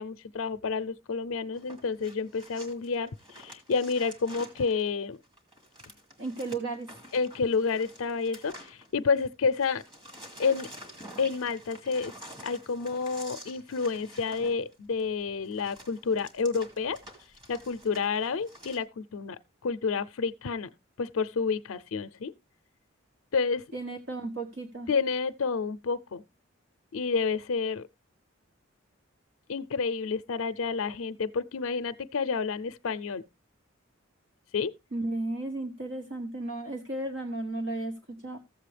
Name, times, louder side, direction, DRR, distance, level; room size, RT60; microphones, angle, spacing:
voice 1, 0.0-5.2 7.1-9.8 10.4-10.7 11.2-12.1 12.4-17.0 17.5-20.7 21.0-22.3 23.3-23.6 24.9-26.2 26.9-27.9 29.5-33.2 34.5-34.7, left 5 dB, 80° left, 0.5 m, -29 dB
sound 1, 1.5-9.3 9.5-18.8, equal, 20° right, 2.1 m, -49 dB
voice 2, 6.2-6.9 23.7-24.9 34.9-38.4, right 2 dB, 65° right, 1.3 m, -34 dB
14.5 x 7.6 x 3.3 m
head